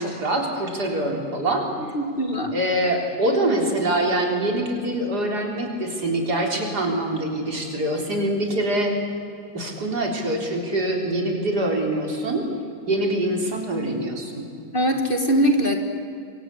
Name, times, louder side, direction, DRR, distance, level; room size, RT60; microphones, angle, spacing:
voice 1, 0.0-1.7 2.5-8.9 9.5-12.4 12.9-14.5, right 1 dB, 70° right, 1 dB, 4.3 m, -24 dB
voice 2, 1.9-2.6 14.7-15.8, right 1 dB, 30° left, 4 dB, 2.2 m, -21 dB
27.5 x 24.0 x 8.3 m, 2.4 s
omnidirectional pair, 1.8 m